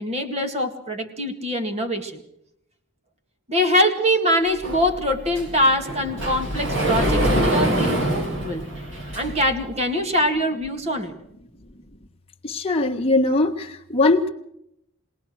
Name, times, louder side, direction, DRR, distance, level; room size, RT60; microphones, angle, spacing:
voice 1, 0.0-2.2 3.5-8.6 9.1-11.2, equal, 30° right, 6 dB, 2.1 m, -23 dB
Sliding door, 4.6-9.6, right 1 dB, 65° right, 5.9 m, -24 dB
voice 2, 12.4-14.3, left 2 dB, 30° left, 2 dB, 1.7 m, -20 dB
22.0 x 18.5 x 6.4 m, 0.77 s
head